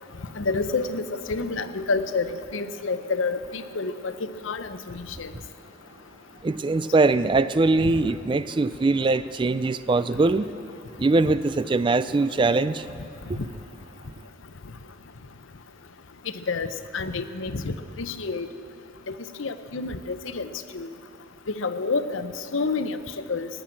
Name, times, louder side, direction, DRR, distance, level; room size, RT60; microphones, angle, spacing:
voice 1, 0.4-4.1 4.4-5.3 7.8-7.9 13.4-13.5 16.5-18.5 19.1-19.2 19.4-20.5 20.7-20.9 21.5-23.0 23.3-23.5, left 4 dB, 90° left, 11 dB, 0.7 m, -29 dB
voice 2, 6.4-10.5 11.0-12.8, right 3 dB, 25° right, 14 dB, 0.3 m, -22 dB
17.0 x 10.5 x 7.5 m, 2.5 s
head